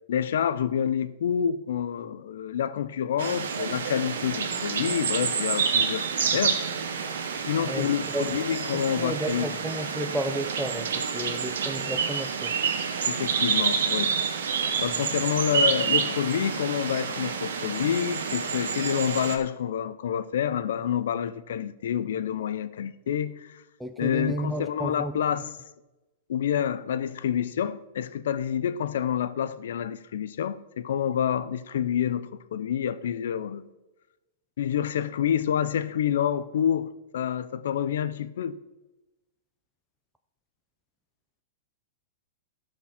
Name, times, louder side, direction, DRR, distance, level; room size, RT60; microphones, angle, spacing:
voice 1, 0.1-6.0 6.3-6.6 7.5-9.6 13.1-14.2 14.8-23.5 24.0-25.5 26.3-33.7 34.6-38.6, left 9 dB, 75° left, 0.6 m, -28 dB
sound 1, 3.2-19.4, right 6 dB, 80° right, 1.3 m, -28 dB
voice 2, 7.6-8.4 8.7-12.6 14.8-15.1 23.8-25.1, right 1 dB, 5° right, 0.6 m, -33 dB
12.5 x 5.1 x 5.8 m
hypercardioid pair, 125°, 0 cm